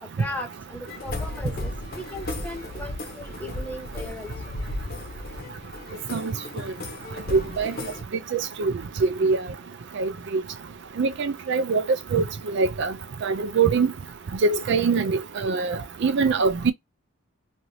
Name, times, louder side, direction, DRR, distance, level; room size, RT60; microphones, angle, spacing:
voice 1, 0.0-1.7 2.0-4.3, left 1 dB, 10° left, 0.8 m, -37 dB
sound 1, 0.9-8.0, left 2 dB, 45° left, 0.8 m, -35 dB
voice 2, 7.3-7.7 8.3-8.7 9.0-9.4 10.0-10.4 11.0-11.8 12.1-12.9 13.2-13.9 14.4-16.7, right 4 dB, 55° right, 0.4 m, -23 dB
2.7 x 2.7 x 3.1 m
head